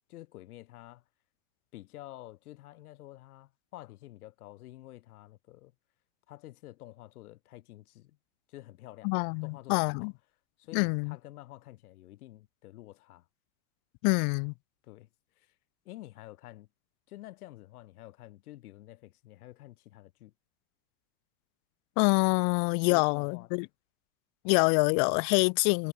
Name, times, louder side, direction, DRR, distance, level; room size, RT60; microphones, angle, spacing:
voice 1, 0.1-1.0 1.7-5.7 6.3-8.2 8.5-9.1 9.4-10.1 10.6-13.3 14.8-15.1 15.4-15.5 15.8-16.7 17.1-20.3 22.9-23.7, left 16 dB, 60° left, 4.3 m, -49 dB
voice 2, 9.0-10.1 10.7-11.1 14.0-14.5 22.0-23.7 24.4-25.9, left 40 dB or more, 30° left, 1.1 m, -26 dB
supercardioid pair, 170°, 49 cm